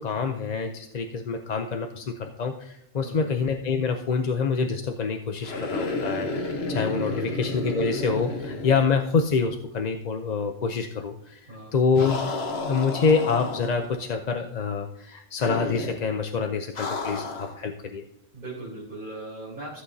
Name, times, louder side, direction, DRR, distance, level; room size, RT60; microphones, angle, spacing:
voice 1, 0.0-18.0, left 5 dB, 45° left, 5 dB, 0.7 m, -26 dB
voice 2, 3.0-3.4 7.2-7.4 11.5-11.8 18.3-19.8, right 2 dB, 50° right, -8 dB, 3.8 m, -39 dB
sound 1, 5.4-9.6 9.8-9.9 12.0-14.0 15.4-16.1 16.8-17.6, left 3 dB, 70° left, 1.4 m, -32 dB
15.0 x 8.2 x 2.7 m, 0.79 s
omnidirectional pair, 1.1 m